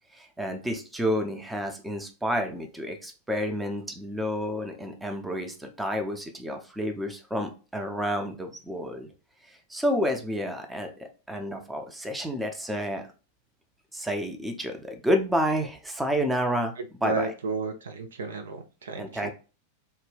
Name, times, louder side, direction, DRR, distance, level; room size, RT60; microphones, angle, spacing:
voice 1, 0.1-9.1 9.4-13.1 13.9-16.7 17.0-17.3 19.0-19.3, equal, 5° right, 0.5 m, -30 dB
voice 2, 17.0-19.1, right 4 dB, 65° right, 0.3 m, -32 dB
2.7 x 2.1 x 3.3 m
figure-of-eight pair, 90°, 0 cm